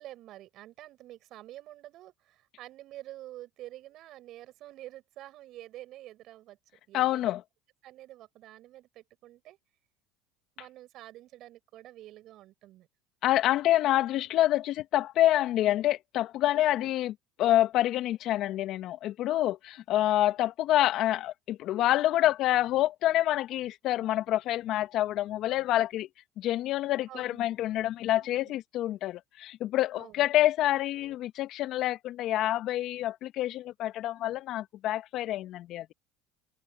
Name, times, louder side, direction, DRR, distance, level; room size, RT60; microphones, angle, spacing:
voice 1, 0.0-6.6 6.9-7.3 7.8-9.6 10.6-12.9 16.5-16.9 27.1-27.4 28.1-28.5 29.9-30.3, right 14 dB, 60° right, 7.9 m, -48 dB
voice 2, 6.9-7.4 13.2-26.1 26.4-35.9, left 14 dB, 60° left, 2.1 m, -27 dB
hypercardioid pair, 85°, 0 cm